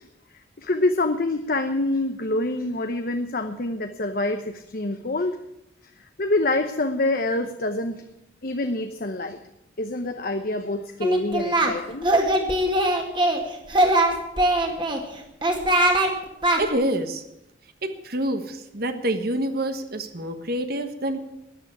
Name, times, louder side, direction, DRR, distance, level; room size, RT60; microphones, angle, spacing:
voice 1, 0.6-5.3 6.2-8.0 8.4-9.4 9.8-12.1, left 2 dB, 50° left, 7 dB, 0.9 m, -26 dB
Singing, 11.0-11.7 12.0-13.4 13.7-15.0 15.4-16.1 16.4-16.6, right 1 dB, 25° right, 2.1 m, -21 dB
voice 2, 16.6-17.2 17.8-21.2, right 1 dB, 55° right, 8 dB, 1.3 m, -27 dB
13.5 x 9.7 x 9.7 m, 0.86 s
head